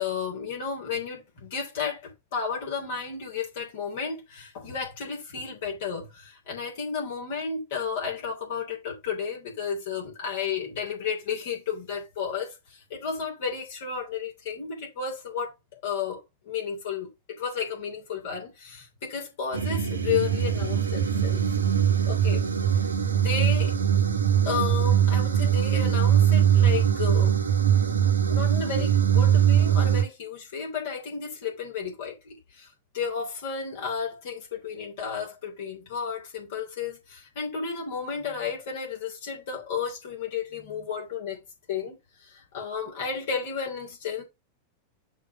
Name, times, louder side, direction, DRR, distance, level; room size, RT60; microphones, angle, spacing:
voice 1, 0.0-17.1 17.4-21.4 22.1-22.5 23.1-23.7 24.4-27.4 28.3-32.7 32.9-41.4 41.7-42.0 42.2-44.2, left 6 dB, 55° left, 3.3 m, -32 dB
sound 1, 19.5-30.0, right 9 dB, 75° right, 1.1 m, -22 dB
6.4 x 3.4 x 6.0 m
figure-of-eight pair, 90°, 0 cm